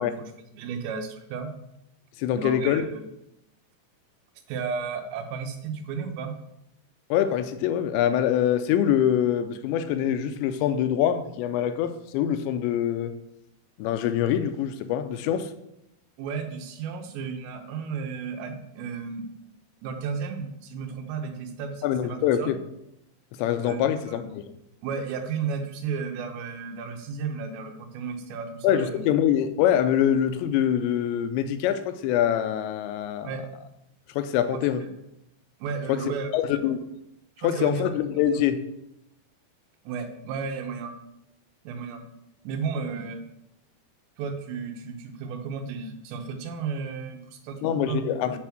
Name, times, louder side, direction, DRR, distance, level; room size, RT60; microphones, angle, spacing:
voice 1, 0.0-1.5 2.3-3.1 4.5-6.3 16.2-19.3 19.8-22.6 23.6-24.3 24.8-29.0 33.2-33.4 34.5-34.9 35.6-36.6 37.4-38.0 39.9-40.9 41.6-42.0 42.4-43.2 44.2-48.4, right 5 dB, 85° right, 3.1 m, -33 dB
voice 2, 2.2-2.8 7.1-13.1 13.8-15.5 21.8-22.6 23.4-24.4 28.6-33.3 34.2-34.8 35.9-36.0 36.3-36.9 37.4-38.6 47.6-48.4, left 10 dB, 90° left, 2.9 m, -24 dB
9.5 x 3.5 x 6.0 m
omnidirectional pair, 5.0 m